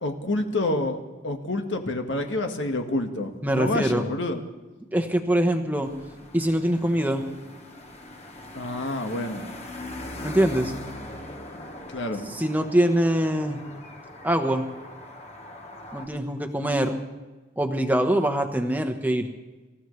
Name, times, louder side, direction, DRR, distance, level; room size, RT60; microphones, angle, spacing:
voice 1, 0.0-4.4 8.5-9.4 11.9-12.2, left 2 dB, 70° left, 4 dB, 1.7 m, -28 dB
voice 2, 3.4-4.0 4.9-5.9 6.3-7.2 10.2-10.7 12.3-13.6 14.2-14.6 15.9-16.9 17.6-19.3, right 1 dB, 10° right, 5 dB, 1.2 m, -23 dB
sound 1, 5.8-16.1, left 1 dB, 30° left, 1.5 m, -41 dB
26.0 x 14.5 x 3.3 m, 1.2 s
head